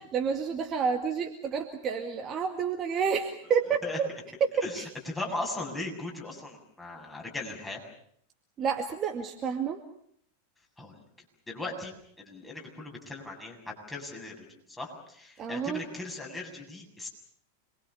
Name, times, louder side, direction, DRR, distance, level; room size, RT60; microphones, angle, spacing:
voice 1, 0.1-4.1 8.6-9.8 15.4-15.8, right 6 dB, 30° right, 4 dB, 2.2 m, -29 dB
voice 2, 3.7-4.0 4.6-7.8 10.8-11.0 11.5-17.1, left 2 dB, 10° left, 0 dB, 7.6 m, -38 dB
27.5 x 23.0 x 7.1 m, 0.67 s
figure-of-eight pair, 90°, 0 cm